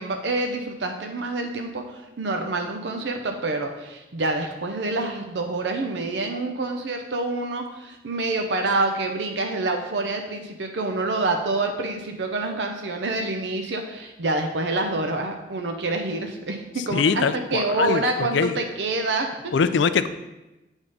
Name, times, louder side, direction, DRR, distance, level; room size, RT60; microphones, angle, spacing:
voice 1, 0.0-19.5, right 2 dB, 70° right, 4 dB, 0.6 m, -27 dB
voice 2, 16.9-18.0 18.3-18.6 19.5-20.1, left 5 dB, 75° left, 12 dB, 0.4 m, -22 dB
8.1 x 3.5 x 5.3 m, 1.0 s
head